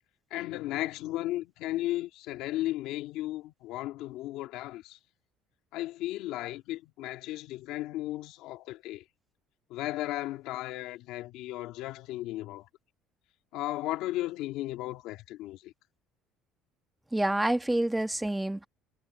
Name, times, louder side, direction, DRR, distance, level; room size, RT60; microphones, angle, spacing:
voice 1, 0.3-5.0 5.7-9.0 9.7-12.7 13.5-15.7, left 16 dB, 75° left, 1.8 m, -35 dB
voice 2, 17.1-18.7, right 1 dB, 5° right, 1.3 m, -27 dB
cardioid pair, 120°, 0 cm